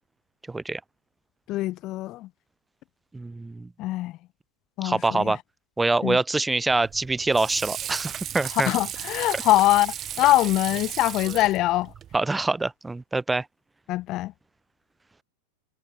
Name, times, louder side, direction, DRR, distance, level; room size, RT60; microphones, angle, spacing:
voice 1, 0.5-0.8 3.1-3.7 4.8-5.4 5.8-8.7 12.1-13.5, right 3 dB, 10° right, 0.7 m, -25 dB
voice 2, 1.5-2.3 3.8-4.2 4.8-5.4 6.0-6.2 8.5-11.9 13.9-14.3, left 16 dB, 35° left, 0.6 m, -23 dB
Water / Sink (filling or washing), 6.7-12.2, right 10 dB, 25° right, 2.2 m, -35 dB
figure-of-eight pair, 90°, 0 cm